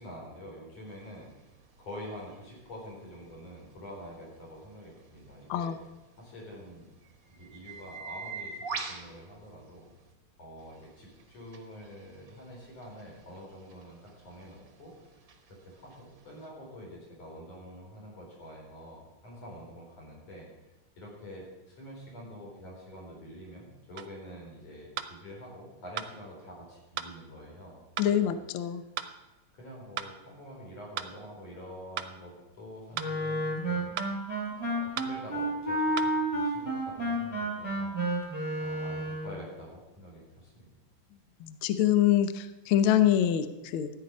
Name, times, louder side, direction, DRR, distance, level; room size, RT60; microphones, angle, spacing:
voice 1, 0.0-5.7 6.2-6.9 7.4-9.9 10.4-15.2 15.5-20.5 21.0-28.3 29.6-33.9 34.5-38.0 38.6-40.7, equal, 60° left, -3 dB, 5.2 m, -47 dB
sound 1, 0.9-10.1 10.6-16.5, right 5 dB, 55° right, 1.0 m, -46 dB
sound 2, 24.0-24.1 25.0-25.1 26.0-26.1 27.0-27.1 28.0-28.1 29.0-29.1 30.0-30.1 31.0-31.1 32.0-32.1 33.0-33.1 34.0-34.1 35.0-35.1 36.0-36.1, right 9 dB, 75° right, 1.5 m, -36 dB
voice 2, 28.0-28.8 41.4-43.9, left 10 dB, 90° left, 11 dB, 1.1 m, -25 dB
Wind instrument woodwind instrument, 33.0-39.3, right 1 dB, 10° left, 2.5 m, -31 dB
13.5 x 9.5 x 5.3 m, 1.0 s
omnidirectional pair, 3.3 m